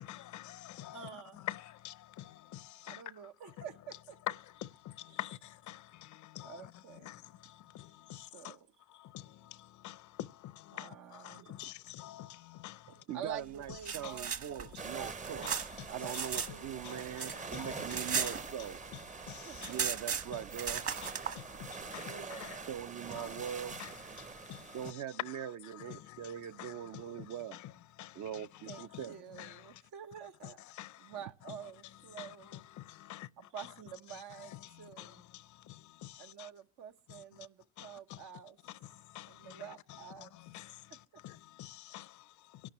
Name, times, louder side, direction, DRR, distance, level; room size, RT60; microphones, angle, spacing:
voice 1, 0.0-1.1 1.4-3.0 4.3-6.7 7.0-8.6 8.9-13.0 14.0-14.2 14.6-14.9 15.8-15.9 16.3-16.6 16.8-18.3 19.1-19.7 21.0-22.6 23.1-23.4 23.8-25.4 25.7-26.3 26.6-27.7 28.0-29.0 29.4-29.7 30.7-31.1 32.2-33.3 34.4-36.5 37.1-37.2 37.8-38.2 38.8-42.7, left 14 dB, 75° left, 0.6 m, -47 dB
voice 2, 0.9-1.4 2.9-4.2 5.1-5.2 6.4-7.2 8.3-8.7 10.7-11.8 13.1-15.6 15.9-16.2 16.5-17.4 19.4-19.8 22.0-22.7 28.7-30.6 31.0-32.6 33.1-35.2 36.2-38.6 39.3-40.3 40.9-41.0, right 8 dB, 90° right, 1.0 m, -49 dB
voice 3, 13.0-15.5 15.9-18.8 19.6-20.9 22.7-23.8 24.7-27.6 28.1-29.1, right 10 dB, 70° right, 0.6 m, -42 dB
sound 1, 13.6-16.5 16.8-19.0 19.2-19.3 19.5-21.4, right 7 dB, 50° right, 1.3 m, -36 dB
sound 2, 14.8-24.9, right 4 dB, 25° right, 0.6 m, -45 dB
23.5 x 11.5 x 3.0 m
cardioid pair, 90°, 30 cm